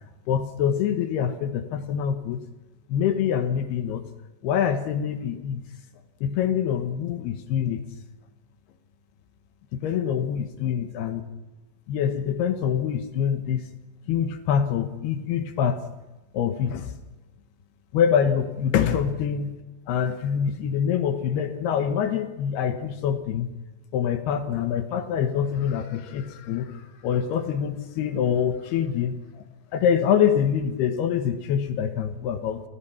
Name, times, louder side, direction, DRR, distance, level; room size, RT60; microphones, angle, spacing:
voice 1, 0.3-2.4 2.9-4.0 4.4-5.6 6.2-7.8 9.7-11.2 11.9-13.7 14.1-15.8 16.3-16.9 17.9-19.5 19.9-23.5 23.9-29.4 29.7-32.6, left 8 dB, 70° left, 9 dB, 2.9 m, -25 dB
28.0 x 17.0 x 5.9 m, 1.1 s
omnidirectional pair, 5.2 m